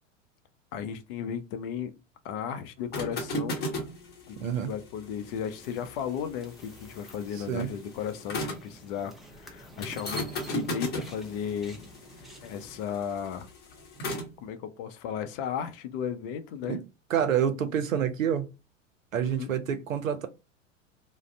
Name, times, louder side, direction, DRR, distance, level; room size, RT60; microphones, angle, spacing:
voice 1, 0.7-1.9 2.2-3.6 4.3-11.8 12.2-13.5 14.4-16.8 19.2-19.5, left 8 dB, 45° left, 0.5 m, -35 dB
sound 1, 2.8-8.7 9.8-14.3, equal, 25° left, 0.9 m, -37 dB
voice 2, 4.4-4.7 7.5-7.7 16.6-16.8 17.1-18.5 19.1-20.3, right 8 dB, 85° right, 0.6 m, -28 dB
sound 2, 5.2-12.9, right 1 dB, ahead, 0.4 m, -48 dB
2.4 x 2.0 x 3.2 m
figure-of-eight pair, 85°, 38 cm